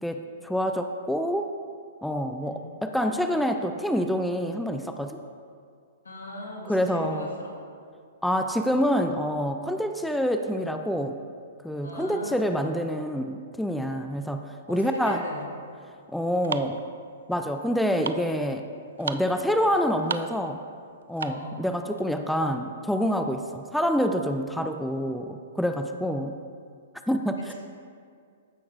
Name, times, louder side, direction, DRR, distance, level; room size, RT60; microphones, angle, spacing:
voice 1, 0.0-1.5 2.0-5.2 6.7-7.3 8.2-11.2 11.6-15.2 16.1-16.8 17.3-18.7 19.0-20.6 21.1-26.4 27.1-27.5, equal, ahead, 6 dB, 0.4 m, -27 dB
voice 2, 6.0-7.5 11.8-12.5 14.7-15.5 21.3-21.7 27.4-27.5, left 2 dB, 90° left, -2 dB, 1.8 m, -39 dB
sound 1, 15.3-21.6, right 6 dB, 75° right, 0.3 m, -37 dB
14.0 x 5.9 x 2.6 m, 2.2 s
hypercardioid pair, 120°, 0 cm